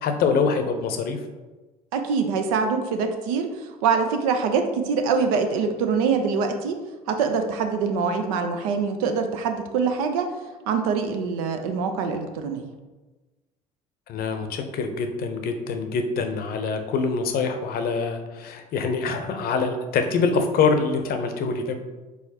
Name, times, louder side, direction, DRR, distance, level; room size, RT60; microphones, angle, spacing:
voice 1, 0.0-1.2 14.1-21.8, left 5 dB, 55° left, 7 dB, 0.7 m, -25 dB
voice 2, 1.9-3.5 3.8-6.8 7.1-10.3 10.7-12.7, right 5 dB, 80° right, 6 dB, 0.5 m, -24 dB
4.7 x 4.0 x 2.8 m, 1.2 s
hypercardioid pair, 60°, 18 cm